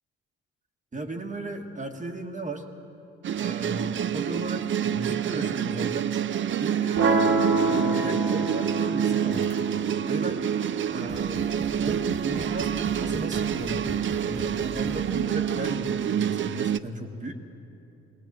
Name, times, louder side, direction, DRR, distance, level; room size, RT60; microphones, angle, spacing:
voice 1, 0.9-2.6 3.3-6.1 6.6-7.3 7.7-9.5 10.1-10.4 10.9-11.4 11.8-17.3, right 2 dB, 25° right, 4 dB, 1.6 m, -35 dB
sound 1, 3.2-16.8, right 9 dB, 40° right, 0.5 m, -27 dB
sound 2, 7.0-13.0, right 3 dB, 60° right, 1.9 m, -28 dB
sound 3, 9.3-10.0 10.7-10.8 11.1-15.3, left 2 dB, 20° left, 1.3 m, -41 dB
20.0 x 18.0 x 7.5 m, 3.0 s
cardioid pair, 90°, 30 cm